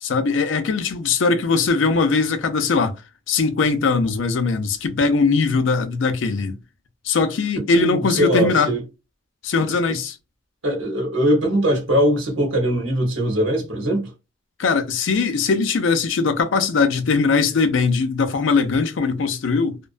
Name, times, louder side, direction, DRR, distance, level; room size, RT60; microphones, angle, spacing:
voice 1, 0.0-3.0 3.3-6.6 7.0-8.7 9.4-10.2 14.6-19.8, left 4 dB, 80° left, 0.5 m, -20 dB
voice 2, 7.6-8.8 9.5-10.0 10.6-14.1, equal, 85° right, 1.1 m, -21 dB
2.5 x 2.2 x 2.4 m
head